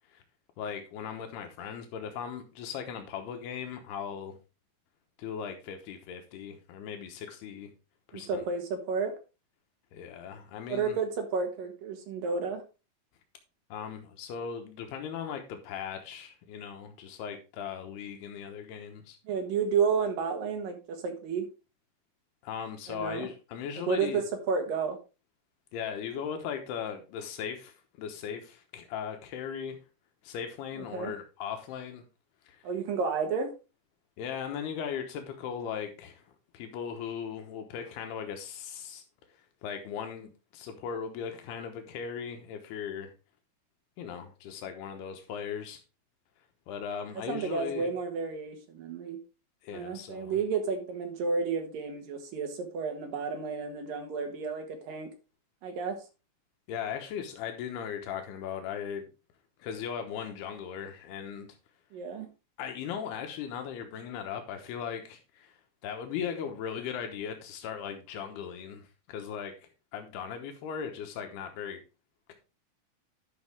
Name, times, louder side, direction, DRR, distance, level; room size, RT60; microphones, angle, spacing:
voice 1, 0.6-4.4 5.2-7.7 8.1-8.4 9.9-11.0 13.7-19.2 22.4-24.2 25.7-29.8 30.2-32.0 32.5-32.6 34.2-36.2 36.5-39.0 39.6-43.1 44.0-45.8 46.7-47.9 49.6-50.4 56.7-59.1 59.6-61.6 62.6-65.6 65.8-69.5 69.9-71.8, left 7 dB, 85° left, 3.1 m, -38 dB
voice 2, 8.1-9.1 10.7-12.6 19.3-21.5 22.9-23.3 23.8-25.0 30.9-31.1 32.6-33.5 47.3-49.2 49.7-55.1 55.6-56.0 61.9-62.3, right 5 dB, 65° right, 3.0 m, -31 dB
10.5 x 6.4 x 3.5 m
omnidirectional pair, 4.5 m